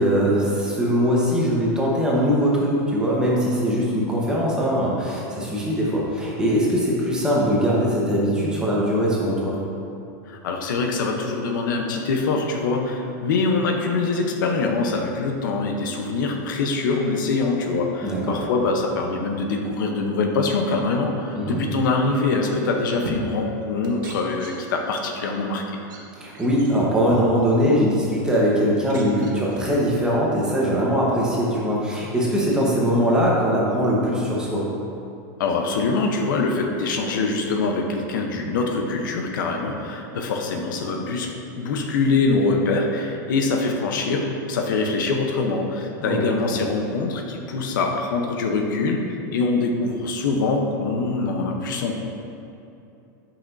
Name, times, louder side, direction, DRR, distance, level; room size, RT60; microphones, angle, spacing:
voice 1, 0.0-9.6 18.0-18.4 21.3-21.6 26.1-34.7 46.0-46.2 46.5-46.6, equal, 5° right, -5 dB, 1.0 m, -21 dB
voice 2, 10.3-25.8 35.4-49.0 49.3-52.0, left 3 dB, 80° left, 2 dB, 0.8 m, -24 dB
sound 1, 22.3-22.4 22.7-23.6 23.8-24.9 25.2-25.3 25.8-26.0 26.3-27.5 28.3-28.4 28.7-30.0, right 3 dB, 80° right, 1.1 m, -37 dB
8.3 x 5.8 x 2.6 m, 2.7 s
supercardioid pair, 160°, 10 cm